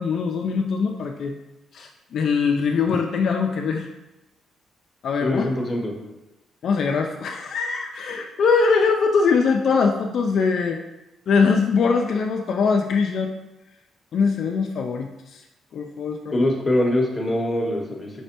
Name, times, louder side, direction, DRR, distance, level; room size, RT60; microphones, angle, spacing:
voice 1, 0.0-1.3 1.7-3.9 5.0-5.5 6.6-10.8 11.3-13.3 14.1-15.4 15.7-16.3, left 5 dB, 60° left, 2 dB, 0.3 m, -22 dB
voice 2, 5.2-5.9 16.3-18.1, left 1 dB, 20° left, 0 dB, 0.8 m, -23 dB
5.1 x 3.1 x 2.8 m, 0.98 s
cardioid pair, 125°, 0 cm